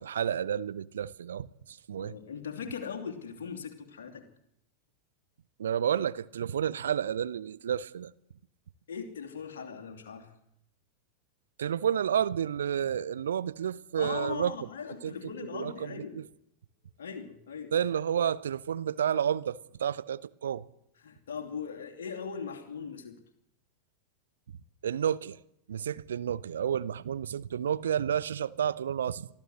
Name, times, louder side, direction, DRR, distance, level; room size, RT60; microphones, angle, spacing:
voice 1, 0.0-2.1 5.6-8.1 11.6-14.5 15.0-15.1 15.5-16.2 17.7-20.7 24.8-25.4 25.7-29.3, right 9 dB, 65° right, 0.7 m, -30 dB
voice 2, 2.0-4.3 8.9-10.3 14.0-16.2 17.0-17.7 21.0-23.2, left 6 dB, 60° left, 2.8 m, -39 dB
24.0 x 14.0 x 7.9 m
figure-of-eight pair, 90°, 0 cm